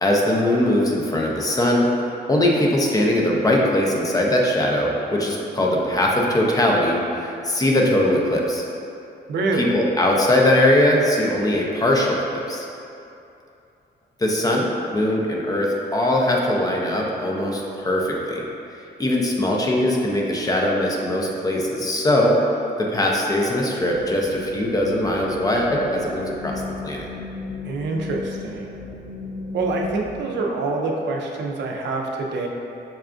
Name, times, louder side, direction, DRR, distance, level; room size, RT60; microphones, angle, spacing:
voice 1, 0.0-1.9 2.3-8.6 9.6-12.7 14.2-14.7 14.9-18.5 19.0-22.4 22.8-27.1, left 1 dB, 20° left, -1 dB, 0.4 m, -21 dB
voice 2, 9.3-9.8 27.6-28.7 29.5-32.5, right 3 dB, 80° right, 0 dB, 0.5 m, -26 dB
sound 1, 23.7-30.2, left 3 dB, 75° left, 0.8 m, -35 dB
5.5 x 2.3 x 2.4 m, 2.7 s
wide cardioid pair, 140°, 18 cm